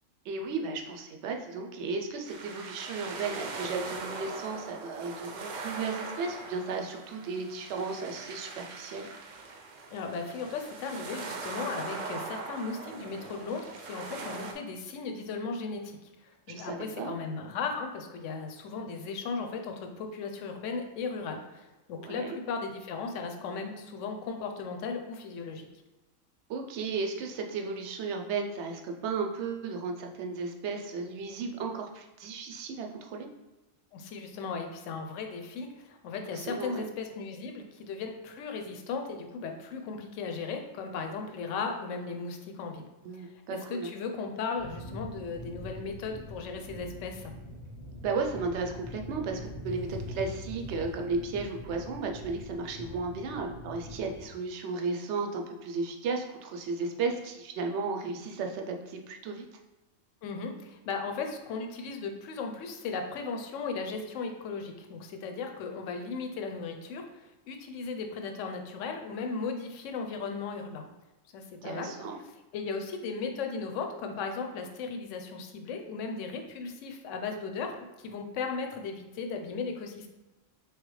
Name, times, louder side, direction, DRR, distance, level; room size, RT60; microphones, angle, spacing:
voice 1, 0.2-9.1 16.5-17.2 22.0-22.4 26.5-33.3 36.3-36.9 43.0-43.9 48.0-59.4 71.6-72.2, right 4 dB, 65° right, 3 dB, 0.8 m, -34 dB
sound 1, 2.3-14.5, right 4 dB, 90° right, 0.4 m, -41 dB
voice 2, 9.9-25.7 33.9-42.8 43.2-47.3 60.2-70.8 71.3-71.9 72.5-80.1, left 4 dB, 75° left, 4 dB, 0.9 m, -36 dB
sound 2, 44.6-54.3, left 1 dB, 30° left, 0.6 m, -43 dB
3.8 x 3.3 x 3.1 m, 1.1 s
omnidirectional pair, 1.3 m